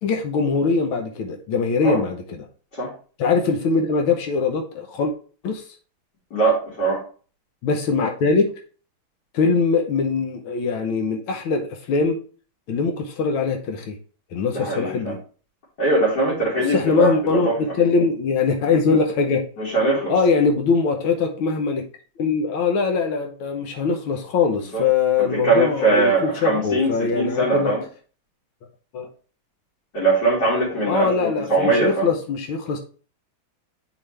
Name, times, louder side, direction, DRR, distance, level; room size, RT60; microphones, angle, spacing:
voice 1, 0.0-2.4 3.2-5.1 5.4-5.7 7.6-8.5 9.3-12.2 12.7-14.0 14.3-15.2 16.6-19.5 20.1-21.8 22.2-27.7 28.9-29.1 30.9-32.8, left 4 dB, 85° left, 3 dB, 1.8 m, -22 dB
voice 2, 6.3-7.0 14.5-15.1 15.8-17.6 19.6-20.1 24.7-24.8 25.2-27.8 29.9-32.1, right 3 dB, 55° left, -6 dB, 3.3 m, -21 dB
8.6 x 4.8 x 3.3 m, 0.40 s
omnidirectional pair, 2.2 m